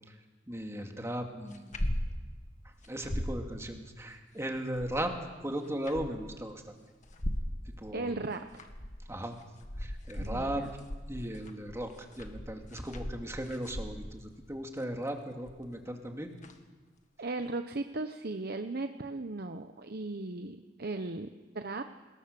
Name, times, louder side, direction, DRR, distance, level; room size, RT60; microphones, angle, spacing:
voice 1, 0.5-1.9 2.8-5.1 5.4-6.7 7.8-8.2 9.1-9.4 9.8-10.6 11.1-16.3, right 1 dB, 15° right, 3 dB, 2.4 m, -37 dB
sound 1, 1.5-2.1 2.4-2.5 2.8-3.4 4.5-5.2 5.7-6.3 7.0-7.6 8.3-9.0 9.4-14.2 15.5-15.8 16.4-16.5, equal, 40° left, 1.9 m, -37 dB
voice 2, 7.9-8.7 10.2-10.7 17.2-21.3 21.5-21.8, right 2 dB, 55° right, 7 dB, 0.9 m, -37 dB
27.0 x 21.0 x 6.9 m, 1.3 s
head